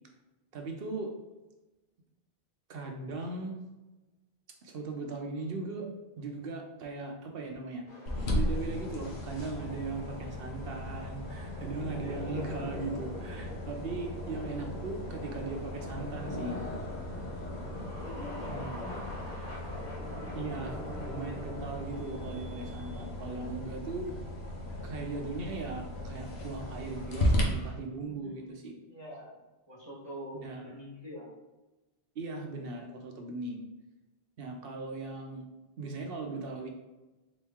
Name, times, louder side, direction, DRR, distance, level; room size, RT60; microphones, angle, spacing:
voice 1, 0.5-1.1 2.7-3.6 4.6-5.9 6.2-7.8 8.3-16.6 18.5-18.9 20.3-24.1 24.8-28.7 30.3-30.7 32.2-33.6 34.4-35.5 35.8-36.7, right 3 dB, 65° right, 3 dB, 0.9 m, -38 dB
sound 1, 7.9-25.9 26.2-27.7, left 1 dB, 45° left, 1.3 m, -45 dB
sound 2, 8.1-27.4, left 1 dB, 85° left, 1.0 m, -37 dB
voice 2, 18.0-19.7 20.2-20.7 28.1-28.4 28.9-29.4 29.7-31.3, equal, 25° left, -6 dB, 1.3 m, -46 dB
3.7 x 3.1 x 3.5 m, 1.1 s
omnidirectional pair, 1.1 m